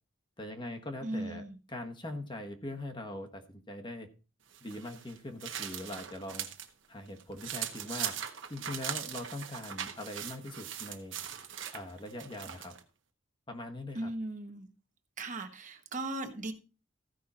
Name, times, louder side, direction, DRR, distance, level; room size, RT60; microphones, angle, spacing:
voice 1, 0.4-1.4 1.7-4.1 4.6-6.5 6.9-8.1 8.5-11.2 11.7-12.7 13.5-14.1, left 1 dB, 25° left, 1.3 m, -41 dB
voice 2, 1.0-1.6 13.9-14.7 15.2-16.5, right 2 dB, 40° right, 1.3 m, -37 dB
sound 1, 4.5-6.7 7.1-12.8, right 9 dB, 65° right, 1.3 m, -40 dB
15.0 x 5.6 x 4.3 m
head